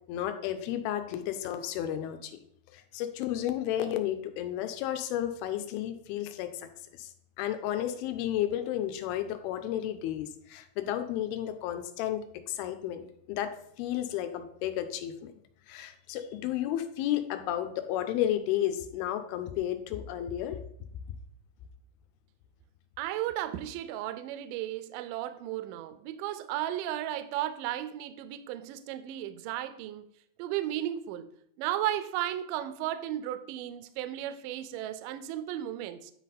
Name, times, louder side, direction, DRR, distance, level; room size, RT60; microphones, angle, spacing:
voice 1, 0.0-2.4 2.7-7.1 7.4-12.2 12.5-13.0 13.3-15.3 15.7-20.6, left 11 dB, 90° left, 8 dB, 2.6 m, -32 dB
voice 2, 23.0-30.1 30.4-31.3 31.6-36.1, right 12 dB, 85° right, 12 dB, 1.9 m, -34 dB
9.7 x 4.2 x 4.0 m, 0.69 s
omnidirectional pair, 4.4 m